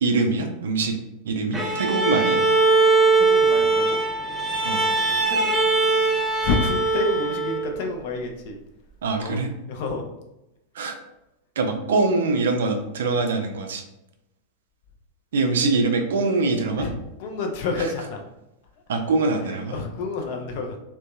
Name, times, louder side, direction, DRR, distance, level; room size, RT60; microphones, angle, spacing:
voice 1, 0.0-1.0 1.2-2.4 4.6-4.8 9.0-9.5 10.8-11.0 11.6-13.8 15.3-16.9 17.8-17.9 18.9-19.7, right 3 dB, 60° right, 4 dB, 0.3 m, -23 dB
Bowed string instrument, 1.5-7.8, right 3 dB, 10° right, 0.5 m, -21 dB
voice 2, 3.1-4.0 5.3-5.5 6.4-8.6 9.2-9.4 9.7-10.0 16.8-16.9 17.2-18.2 19.4-20.8, left 3 dB, 50° left, 3 dB, 0.4 m, -29 dB
2.6 x 2.1 x 2.3 m, 0.90 s
figure-of-eight pair, 90°, 0 cm